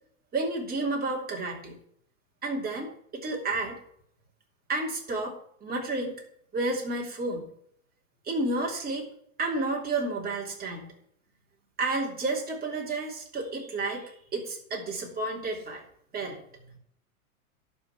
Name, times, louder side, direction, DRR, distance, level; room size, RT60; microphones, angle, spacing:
voice 1, 0.3-1.8 2.4-3.7 4.7-5.3 5.6-6.2 6.5-7.5 8.2-9.1 9.4-10.9 11.8-15.8 16.1-16.4, right 2 dB, 20° right, -1 dB, 3.1 m, -31 dB
11.5 x 4.5 x 8.1 m, 0.68 s
hypercardioid pair, 100°, 44 cm